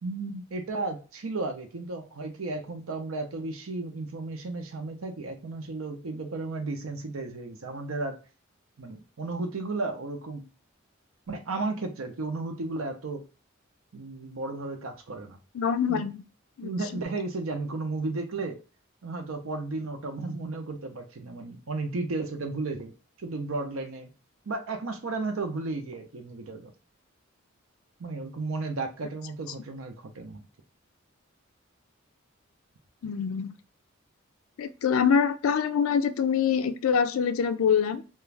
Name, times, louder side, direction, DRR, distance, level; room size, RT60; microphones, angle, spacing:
voice 1, 0.0-8.2 8.8-10.4 11.3-13.2 13.9-15.4 15.9-16.0 16.6-18.6 19.0-22.9 23.2-24.1 24.5-26.7 28.0-30.4, right 3 dB, 85° right, 5 dB, 0.6 m, -34 dB
voice 2, 15.5-16.2 16.6-16.7 33.0-33.5 34.6-38.1, left 7 dB, 85° left, 11 dB, 0.4 m, -25 dB
2.4 x 2.3 x 3.1 m, 0.34 s
head